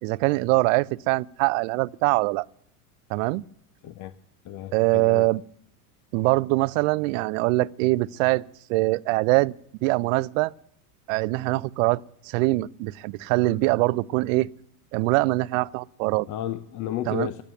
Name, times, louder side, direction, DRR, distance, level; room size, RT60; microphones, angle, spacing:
voice 1, 0.0-2.5 3.1-3.4 4.7-5.4 6.1-8.4 8.7-9.5 9.8-10.5 11.1-14.5 14.9-16.3 17.1-17.3, right 21 dB, 55° right, 0.6 m, -23 dB
voice 2, 4.4-5.3 16.3-17.4, left 11 dB, 40° left, 0.9 m, -32 dB
13.0 x 10.5 x 8.9 m
hypercardioid pair, 105°, 46 cm